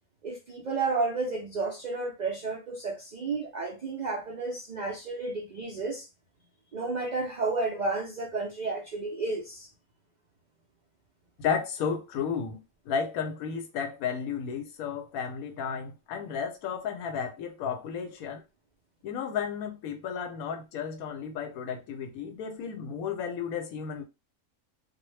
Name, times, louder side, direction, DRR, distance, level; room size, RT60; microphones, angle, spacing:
voice 1, 0.2-6.1 6.7-9.7, right 3 dB, 75° right, 0.4 m, -32 dB
voice 2, 11.4-12.6 12.9-18.4 19.0-24.0, left 7 dB, 90° left, 1.1 m, -33 dB
2.4 x 2.1 x 3.1 m
omnidirectional pair, 1.4 m